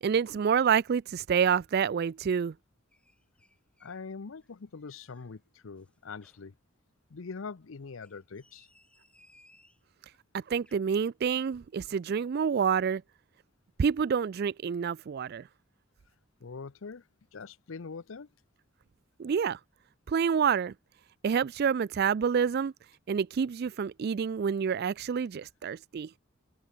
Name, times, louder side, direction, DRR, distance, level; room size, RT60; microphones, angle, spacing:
voice 1, 0.0-2.5 10.3-13.0 13.8-15.4 19.2-19.6 20.1-20.7 21.2-22.7 23.1-26.1, right 7 dB, 50° right, 0.3 m, -28 dB
sound 1, 2.9-4.1 4.4-5.4 5.8-6.5 7.9-9.9 10.4-10.8, left 1 dB, 5° left, 2.8 m, -64 dB
voice 2, 3.8-6.5 7.1-8.7 16.4-18.3, left 4 dB, 70° left, 0.6 m, -43 dB
open air
head